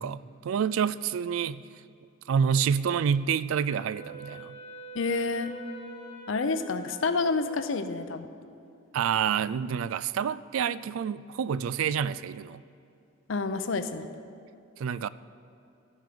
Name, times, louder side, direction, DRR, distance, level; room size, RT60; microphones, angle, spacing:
voice 1, 0.0-1.7 2.3-4.6 8.9-12.6 14.8-15.1, right 7 dB, 80° right, 17 dB, 0.3 m, -28 dB
Wind instrument woodwind instrument, 3.7-8.0, right 2 dB, 25° left, 1.1 m, -45 dB
voice 2, 4.9-5.6 6.3-8.3 13.3-14.1, left 4 dB, 70° left, 10 dB, 0.6 m, -29 dB
13.5 x 9.4 x 5.1 m, 2.5 s
head